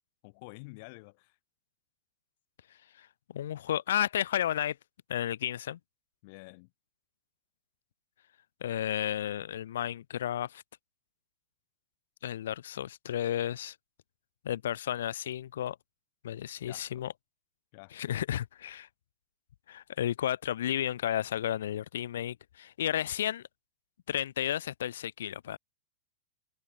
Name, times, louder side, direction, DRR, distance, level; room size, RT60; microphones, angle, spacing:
voice 1, 0.2-1.4 6.2-6.7 16.7-17.0 17.7-18.0, left 28 dB, 55° left, 8.0 m, -49 dB
voice 2, 3.0-4.8 5.1-5.8 8.6-10.6 12.2-13.8 14.4-15.8 16.2-17.1 17.9-18.9 19.7-23.4 24.1-25.6, left 11 dB, 85° left, 0.9 m, -32 dB
supercardioid pair, 135°, 0 cm